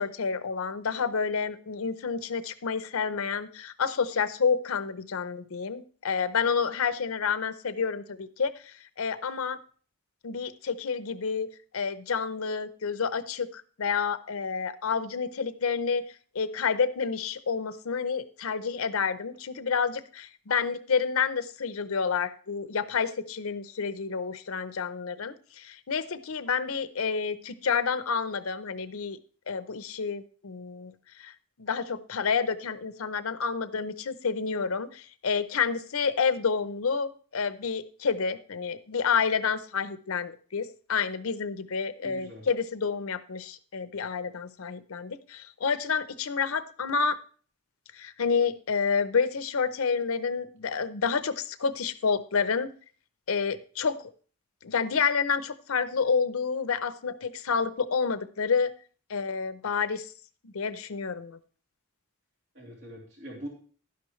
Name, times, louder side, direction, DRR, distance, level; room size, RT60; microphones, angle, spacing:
voice 1, 0.0-9.6 10.2-11.5 11.7-29.2 29.5-30.9 31.2-31.3 31.6-47.2 47.9-52.7 53.3-54.1 54.6-58.7 59.1-60.1 60.4-61.4, left 5 dB, 80° left, 13 dB, 0.7 m, -29 dB
voice 2, 42.0-42.5 62.5-63.5, right 1 dB, 65° right, -2 dB, 2.8 m, -42 dB
11.5 x 10.5 x 3.1 m, 0.42 s
head